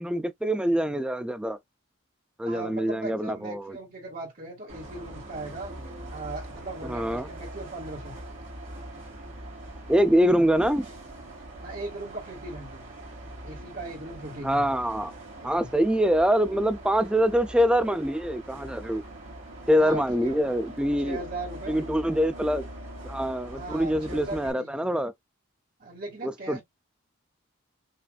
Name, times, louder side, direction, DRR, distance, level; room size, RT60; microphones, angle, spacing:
voice 1, 0.0-1.6 2.4-3.8 6.8-7.3 9.9-10.9 14.4-15.1 15.4-19.0 19.7-21.2 21.7-22.7 23.0-25.1 26.2-26.6, equal, 5° right, 0.3 m, -24 dB
voice 2, 2.4-5.7 6.1-8.1 11.6-12.8 13.4-14.7 15.4-15.7 19.8-20.5 21.0-21.8 23.5-24.9 25.8-26.6, right 2 dB, 45° right, 1.7 m, -38 dB
Bus, 4.7-24.5, right 1 dB, 60° right, 2.2 m, -42 dB
5.7 x 2.6 x 2.3 m
head